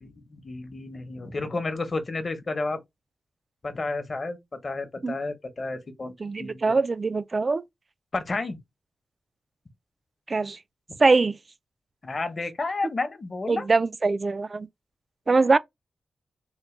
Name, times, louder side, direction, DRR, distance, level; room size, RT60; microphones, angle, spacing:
voice 1, 0.0-2.8 3.6-4.4 4.6-6.1 6.4-6.8 8.1-8.6 12.0-13.6, left 3 dB, 40° left, 0.8 m, -31 dB
voice 2, 6.2-7.6 10.3-10.6 11.0-11.4 13.5-14.7 15.3-15.6, right 3 dB, 35° right, 0.3 m, -22 dB
3.9 x 2.1 x 3.1 m
wide cardioid pair, 110°, 0 cm